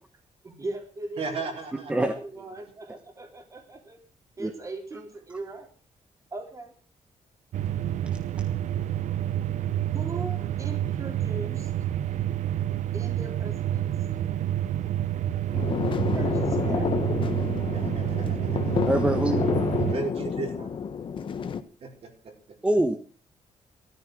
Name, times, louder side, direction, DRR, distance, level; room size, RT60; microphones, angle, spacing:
voice 1, 0.4-1.5 2.0-4.0 4.4-5.7 6.3-6.7 9.9-11.7 12.9-14.3 16.0-16.9, right 2 dB, 25° right, 4 dB, 3.7 m, -39 dB
voice 2, 1.2-2.1 2.5-2.7 17.7-18.8 19.8-20.7 21.8-22.6, right 4 dB, 55° right, 2 dB, 4.6 m, -36 dB
sound 1, 7.5-19.9, right 11 dB, 75° right, 0.8 m, -28 dB
sound 2, 15.5-21.6, left 6 dB, 45° left, 1.3 m, -29 dB
voice 3, 18.9-19.6 22.6-23.0, right 1 dB, 10° right, 5 dB, 1.4 m, -24 dB
15.5 x 13.5 x 6.3 m, 0.41 s
wide cardioid pair, 170°, 12 cm